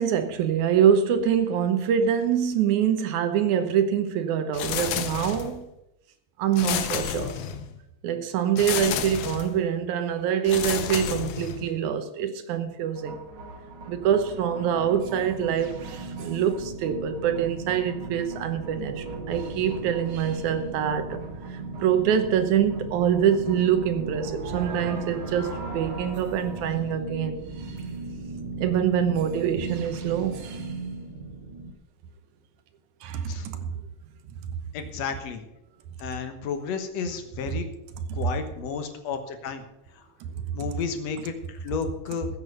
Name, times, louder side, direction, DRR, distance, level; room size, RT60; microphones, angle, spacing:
voice 1, 0.0-5.6 6.4-7.4 8.0-13.2 13.9-21.2 21.5-27.4 28.6-30.4 33.0-33.7 34.4-34.6 38.1-38.3, right 8 dB, 85° right, 2.5 m, -25 dB
sound 1, 4.5-5.7 6.5-7.8 8.6-9.6 10.4-11.8, left 9 dB, 85° left, 2.3 m, -30 dB
sound 2, 12.9-31.7, right 3 dB, 55° right, 2.0 m, -37 dB
voice 2, 34.7-35.4 36.0-37.7 38.1-39.6 40.5-42.3, left 6 dB, 65° left, 2.3 m, -32 dB
14.5 x 7.6 x 6.5 m
omnidirectional pair, 3.3 m